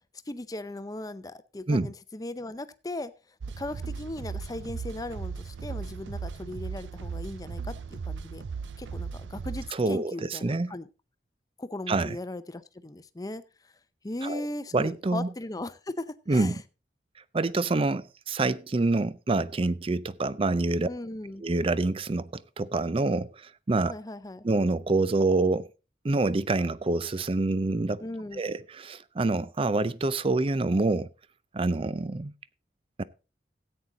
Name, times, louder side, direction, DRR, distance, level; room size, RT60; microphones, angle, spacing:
voice 1, 0.3-3.1 3.6-8.4 8.8-10.9 11.6-13.4 14.0-16.6 20.9-21.4 23.9-24.4 28.0-28.4, left 1 dB, 20° left, 0.6 m, -38 dB
sound 1, 3.4-9.7, right 5 dB, 85° right, 0.5 m, -37 dB
voice 2, 9.7-10.1 10.4-10.7 11.9-12.2 14.2-14.4 14.7-15.3 16.3-16.6 17.3-20.9 21.4-23.9 24.4-25.7 26.0-28.0 28.4-31.1 31.5-32.3 33.0-33.1, right 2 dB, 30° right, 0.5 m, -26 dB
13.5 x 8.7 x 3.9 m
head